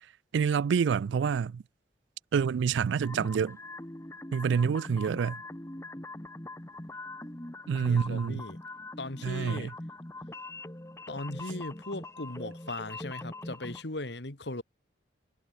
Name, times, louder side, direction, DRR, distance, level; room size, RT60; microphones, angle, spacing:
voice 1, 0.3-1.6 2.3-3.6 4.3-5.4 7.7-8.4 9.2-9.7, right 6 dB, 80° right, 0.3 m, -27 dB
sound 1, 3.0-13.8, left 2 dB, 15° left, 1.1 m, -42 dB
voice 2, 7.8-8.6 9.0-9.7 11.1-14.6, left 2 dB, 70° left, 2.3 m, -38 dB
head